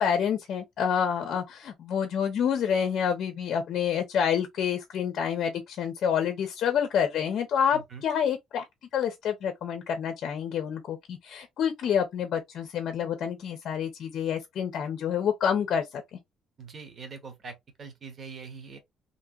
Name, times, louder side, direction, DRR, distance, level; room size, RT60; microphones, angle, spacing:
voice 1, 0.0-8.6 8.9-16.0, left 8 dB, 50° left, 0.7 m, -28 dB
voice 2, 7.7-8.0 16.6-18.8, right 5 dB, 30° right, 0.9 m, -43 dB
2.8 x 2.8 x 2.3 m
cardioid pair, 165°, 0 cm